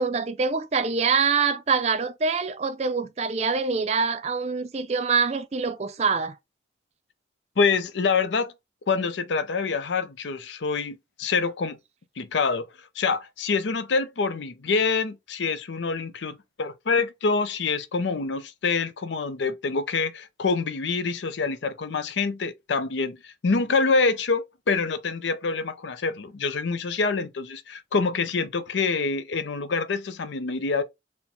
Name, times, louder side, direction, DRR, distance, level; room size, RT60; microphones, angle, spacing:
voice 1, 0.0-6.4, right 5 dB, 35° right, 0.4 m, -25 dB
voice 2, 7.6-8.5 8.9-11.8 12.2-12.7 13.0-30.8, left 4 dB, 85° left, 0.5 m, -26 dB
4.3 x 2.1 x 3.9 m
head